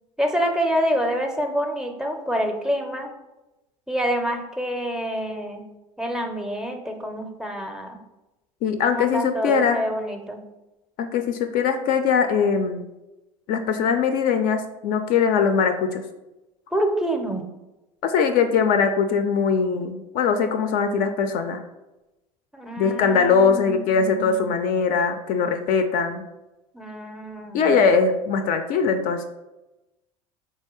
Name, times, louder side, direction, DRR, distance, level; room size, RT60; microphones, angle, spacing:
voice 1, 0.2-3.1 3.9-5.7 6.0-8.0 8.9-10.5 16.7-17.4 22.5-24.5 26.7-27.9, equal, 5° right, 4 dB, 0.5 m, -27 dB
voice 2, 8.6-9.8 11.0-12.9 13.5-16.0 18.0-21.6 22.8-26.2 27.5-29.2, left 5 dB, 50° left, 7 dB, 0.4 m, -21 dB
4.1 x 2.3 x 3.0 m, 0.99 s
hypercardioid pair, 75°, 19 cm